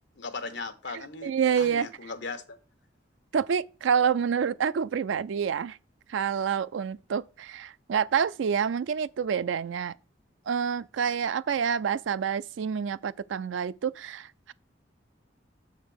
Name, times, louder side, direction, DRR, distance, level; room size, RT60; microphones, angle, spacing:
voice 1, 0.2-2.6, left 4 dB, 70° left, 1.1 m, -38 dB
voice 2, 1.2-1.9 3.3-5.8 6.1-9.9 10.5-14.5, right 7 dB, 85° right, 0.4 m, -27 dB
6.9 x 4.1 x 6.4 m
head